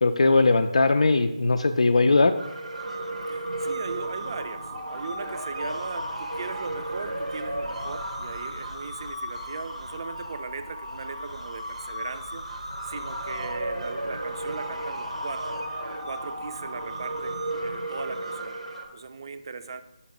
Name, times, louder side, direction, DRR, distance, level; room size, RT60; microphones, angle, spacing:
voice 1, 0.0-2.3, left 3 dB, 65° left, 6 dB, 0.3 m, -20 dB
sound 1, 2.4-18.9, right 1 dB, 90° right, 1.0 m, -34 dB
voice 2, 3.3-12.4 12.8-15.6 15.9-18.5 18.9-19.8, right 4 dB, 45° right, 10 dB, 0.4 m, -38 dB
5.7 x 4.1 x 4.7 m, 0.92 s
figure-of-eight pair, 155°, 4 cm